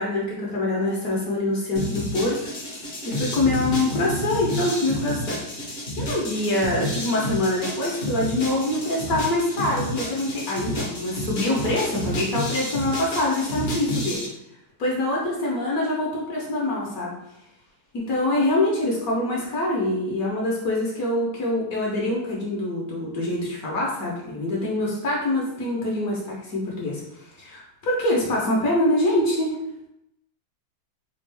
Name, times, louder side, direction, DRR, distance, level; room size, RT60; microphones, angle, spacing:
voice 1, 0.0-2.5 3.0-5.4 6.0-14.2 14.8-17.1 17.9-27.0 27.4-29.5, left 1 dB, 60° left, -3 dB, 1.2 m, -25 dB
sound 1, 1.7-14.3, equal, 40° left, 0.8 m, -30 dB
4.2 x 2.4 x 3.3 m, 0.82 s
omnidirectional pair, 2.0 m